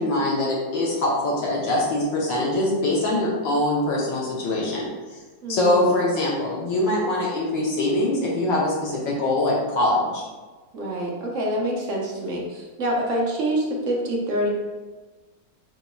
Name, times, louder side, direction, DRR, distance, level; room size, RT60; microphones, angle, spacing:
voice 1, 0.0-4.9 5.5-10.2, left 1 dB, 70° left, -5 dB, 1.6 m, -23 dB
voice 2, 5.4-5.9 10.7-14.5, right 1 dB, 50° right, -2 dB, 1.0 m, -26 dB
8.1 x 2.9 x 2.3 m, 1.3 s
omnidirectional pair, 2.1 m